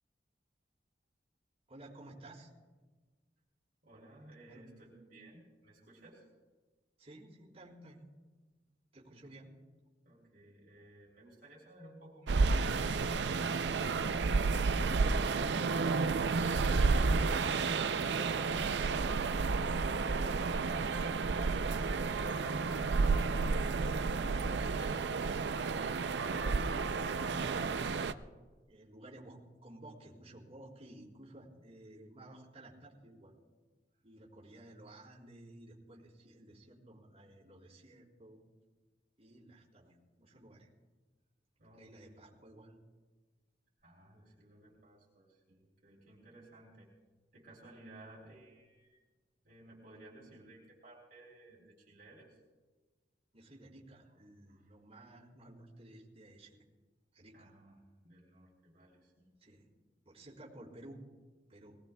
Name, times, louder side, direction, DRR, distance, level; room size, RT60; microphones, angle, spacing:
voice 1, 1.7-2.5 4.5-4.6 7.0-8.1 8.9-9.5 14.8-15.6 23.7-28.0 28.7-33.3 34.0-38.4 39.2-40.7 41.8-42.8 53.3-56.6 57.1-57.5 59.4-59.7 60.1-61.0 61.5-61.8, right 1 dB, 35° right, -6 dB, 3.8 m, -54 dB
voice 2, 3.8-6.3 9.0-9.4 10.0-13.6 41.6-42.3 43.8-46.9 47.3-49.0 49.4-52.4 54.5-55.0 57.3-59.3, right 1 dB, 50° right, -4 dB, 3.1 m, -57 dB
sound 1, 12.3-28.1, right 4 dB, 70° right, 0.5 m, -31 dB
22.0 x 18.5 x 2.3 m, 1.3 s
head